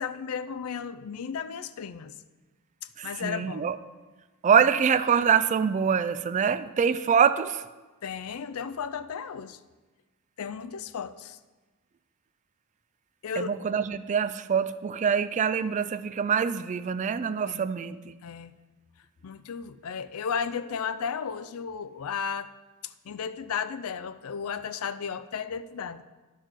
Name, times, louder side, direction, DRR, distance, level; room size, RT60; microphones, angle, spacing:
voice 1, 0.0-2.1 3.0-3.7 8.0-9.6 10.4-11.4 13.2-13.5 17.5-17.7 18.2-18.5 19.2-22.5 23.1-26.0, left 6 dB, 75° left, 13 dB, 0.5 m, -34 dB
voice 2, 3.0-3.8 4.4-7.6 13.4-18.0, right 7 dB, 35° right, 13 dB, 0.3 m, -25 dB
11.5 x 4.6 x 6.1 m, 1.2 s
head